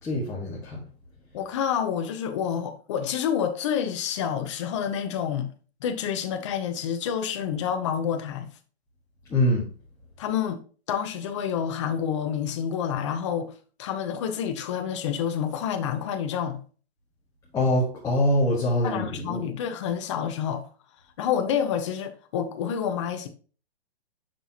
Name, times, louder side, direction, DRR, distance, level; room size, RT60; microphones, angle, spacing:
voice 1, 0.0-0.8 9.3-9.7 17.5-19.4, left 1 dB, 10° left, 1.3 m, -24 dB
voice 2, 1.3-5.5 5.8-8.5 10.2-10.6 10.9-13.5 13.8-16.6 18.8-20.6 21.2-23.3, left 8 dB, 30° left, 0.7 m, -28 dB
6.8 x 5.9 x 2.8 m
hypercardioid pair, 155°, 32 cm